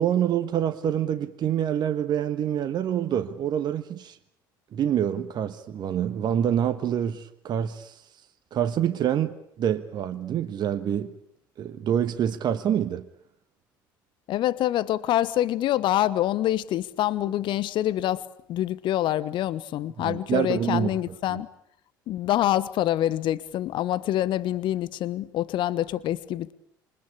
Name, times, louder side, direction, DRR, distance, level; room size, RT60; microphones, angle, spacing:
voice 1, 0.0-4.2 4.7-8.0 8.5-11.1 11.6-13.1 20.0-21.4, right 9 dB, 40° right, 1.3 m, -26 dB
voice 2, 14.3-18.2 18.5-21.5 22.1-26.5, left 13 dB, 45° left, 1.1 m, -26 dB
27.5 x 25.0 x 8.5 m
figure-of-eight pair, 60°, 11 cm